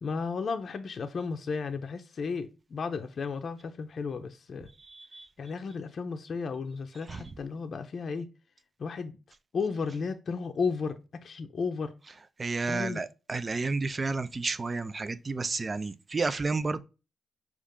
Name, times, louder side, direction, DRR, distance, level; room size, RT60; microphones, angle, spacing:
voice 1, 0.0-4.7 5.4-8.3 8.8-9.1 9.5-10.9 11.2-11.9 12.7-13.0, left 5 dB, 60° left, 0.5 m, -33 dB
voice 2, 12.4-16.8, right 3 dB, 35° right, 0.4 m, -31 dB
5.2 x 2.5 x 3.5 m
cardioid pair, 70°, 0 cm